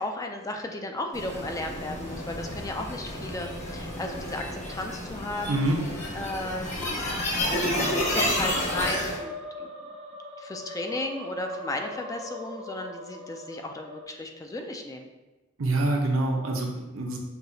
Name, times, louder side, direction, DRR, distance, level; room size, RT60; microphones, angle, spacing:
voice 1, 0.0-5.7 6.1-7.0 7.8-9.7 10.4-15.1, left 2 dB, 15° left, 4 dB, 0.3 m, -35 dB
sound 1, 1.1-9.2, left 1 dB, 35° left, 1.2 m, -30 dB
voice 2, 5.5-5.8 15.6-17.2, right 2 dB, 80° right, 1 dB, 0.7 m, -26 dB
sound 2, 7.7-14.0, equal, 30° right, 0.6 m, -39 dB
5.8 x 2.8 x 2.7 m, 1.1 s
head